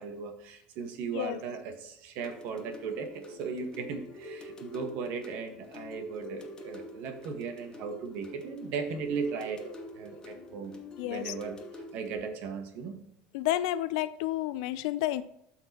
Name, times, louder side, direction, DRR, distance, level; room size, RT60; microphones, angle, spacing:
voice 1, 0.0-9.6 9.9-13.0, right 5 dB, 65° right, 6 dB, 1.3 m, -37 dB
sound 1, 2.2-12.2, left 1 dB, 20° left, 1.2 m, -46 dB
voice 2, 11.0-11.3 13.3-15.2, left 14 dB, 85° left, 15 dB, 0.4 m, -30 dB
12.5 x 4.5 x 2.9 m, 0.79 s
cardioid pair, 125°, 3 cm